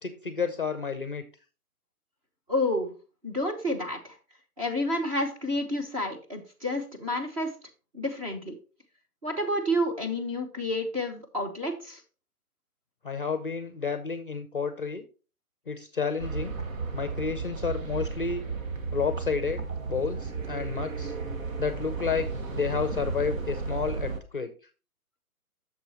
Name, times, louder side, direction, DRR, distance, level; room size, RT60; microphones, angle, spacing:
voice 1, 0.0-1.2 13.0-15.0 15.7-16.5 16.9-18.4 18.9-21.1 21.6-24.5, left 5 dB, 35° left, 10 dB, 0.6 m, -31 dB
voice 2, 2.5-2.9 3.2-4.2 4.6-7.6 7.9-8.5 9.2-12.0, left 1 dB, 25° right, 2 dB, 1.1 m, -29 dB
sound 1, 16.2-24.2, right 4 dB, 60° right, 1.4 m, -34 dB
8.3 x 6.7 x 2.9 m, 0.33 s
hypercardioid pair, 175°, 45 cm